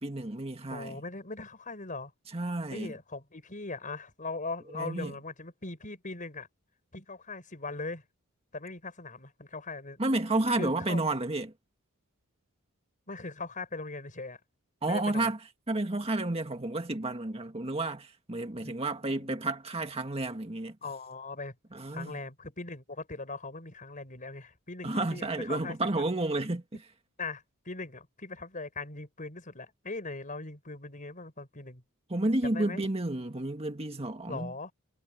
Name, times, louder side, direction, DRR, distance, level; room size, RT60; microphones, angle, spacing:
voice 1, 0.0-1.0 2.3-2.9 4.7-5.1 10.0-11.5 14.8-15.4 15.7-20.8 21.7-22.2 24.8-26.8 32.1-34.5, right 2 dB, 30° right, 1.8 m, -31 dB
voice 2, 0.7-2.1 2.7-6.5 6.9-8.0 8.5-10.0 10.6-11.0 13.1-14.4 14.9-15.3 18.6-19.3 20.8-21.5 21.9-26.0 27.2-31.8 32.4-32.9 34.3-34.7, left 3 dB, 40° left, 4.9 m, -40 dB
head